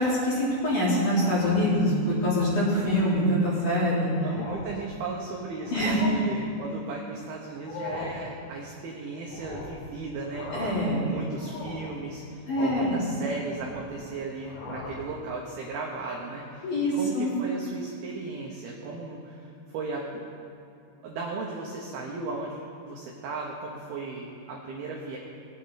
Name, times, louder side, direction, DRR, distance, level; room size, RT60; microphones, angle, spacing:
voice 1, 0.0-4.1 5.7-6.0 10.5-11.1 12.5-13.0 16.6-17.3, equal, 40° left, -9 dB, 4.6 m, -24 dB
sound 1, 1.2-1.8 2.3-2.5 2.9-3.1 3.7-3.8 4.1-4.8 5.6-6.1 7.5-8.2 9.3-9.8 10.2-10.9 11.4-11.9 12.6-13.0 13.4-14.0 14.4-15.1, left 3 dB, 65° left, 3.6 m, -39 dB
voice 2, 4.2-10.7 11.0-20.2 21.0-25.2, right 3 dB, 85° right, -2 dB, 2.1 m, -36 dB
20.5 x 9.0 x 4.1 m, 2.5 s
omnidirectional pair, 6.0 m